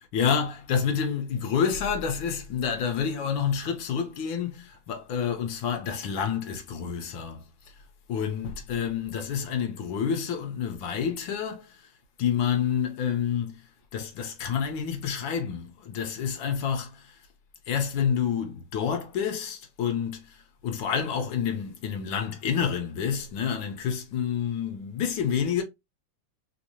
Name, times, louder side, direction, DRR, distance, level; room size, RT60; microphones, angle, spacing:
voice 1, 0.0-7.5 8.1-11.9 12.2-13.6 13.9-17.2 17.7-25.6, left 7 dB, 80° left, 1.5 m, -28 dB
3.5 x 2.7 x 2.8 m
omnidirectional pair, 2.2 m